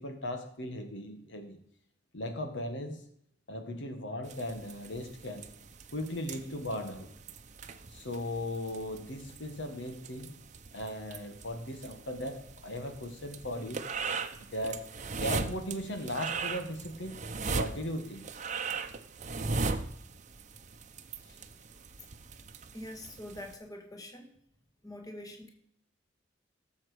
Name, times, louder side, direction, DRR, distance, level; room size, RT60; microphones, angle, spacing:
voice 1, 0.0-1.6 2.1-3.0 3.5-5.5 5.9-7.1 7.9-10.4 10.7-13.8 14.1-14.9 15.2-17.2 17.5-18.3 21.2-21.4, left 1 dB, 70° left, 6 dB, 1.7 m, -37 dB
sound 1, 4.2-23.5, right 4 dB, 40° right, 0.9 m, -39 dB
voice 2, 22.7-24.3 24.8-25.5, left 1 dB, 20° left, 3 dB, 1.8 m, -44 dB
17.5 x 7.3 x 5.1 m, 0.68 s
head